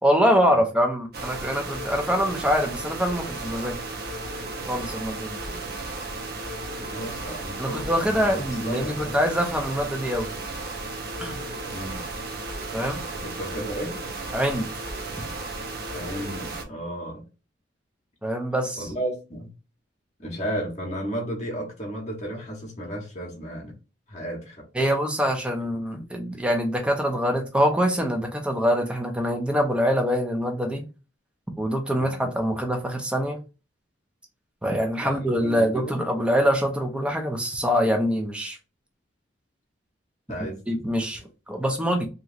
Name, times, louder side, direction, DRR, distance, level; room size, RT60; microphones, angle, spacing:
voice 1, 0.0-3.8 4.7-5.4 7.6-10.3 11.2-11.4 12.7-13.0 14.3-14.7 18.2-18.9 24.7-30.8 31.6-33.4 34.6-38.6 40.7-41.2 41.5-42.1, equal, 5° right, 0.5 m, -24 dB
sound 1, 1.1-16.6, right 2 dB, 55° right, 0.6 m, -34 dB
voice 2, 6.9-9.2 11.7-12.1 13.1-14.0 15.9-17.2 18.8-19.5 20.2-23.7 24.1-24.9 25.9-26.1 32.0-32.3 35.0-36.0 40.3-40.8, right 1 dB, 35° left, 0.9 m, -34 dB
3.0 x 2.8 x 2.4 m
head